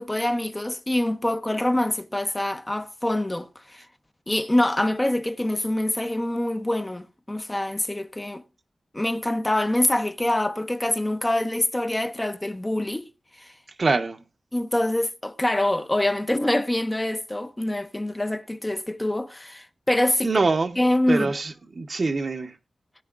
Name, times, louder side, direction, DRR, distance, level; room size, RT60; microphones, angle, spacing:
voice 1, 0.0-3.9 4.3-8.4 8.9-13.1 13.3-13.5 14.5-20.4 20.8-21.3, left 1 dB, 15° left, 0.6 m, -25 dB
voice 2, 13.8-14.2 20.2-20.8 21.1-22.5, right 3 dB, 50° right, 0.7 m, -24 dB
18.5 x 9.5 x 2.4 m
wide cardioid pair, 90°, 0 cm